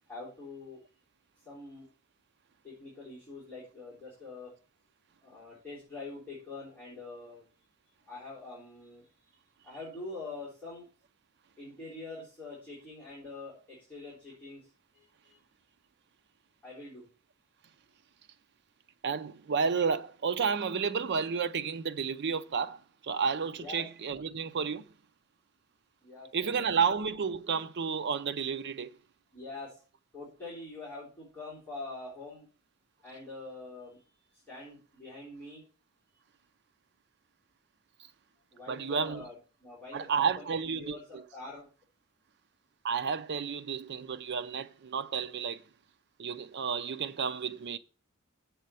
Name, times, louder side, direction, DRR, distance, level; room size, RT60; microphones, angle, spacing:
voice 1, 0.1-0.8 1.5-1.9 2.6-4.5 5.2-7.4 8.1-9.1 9.6-10.9 11.6-15.4 16.6-17.1 23.6-23.8 26.0-26.5 29.3-29.8 30.1-32.5 33.0-35.6 38.5-41.7, left 3 dB, 10° left, 3.5 m, -45 dB
voice 2, 19.0-24.8 26.3-29.0 38.7-39.3 39.9-41.2 42.8-45.6 46.2-47.8, right 6 dB, 50° right, 0.5 m, -31 dB
7.5 x 4.5 x 6.8 m
head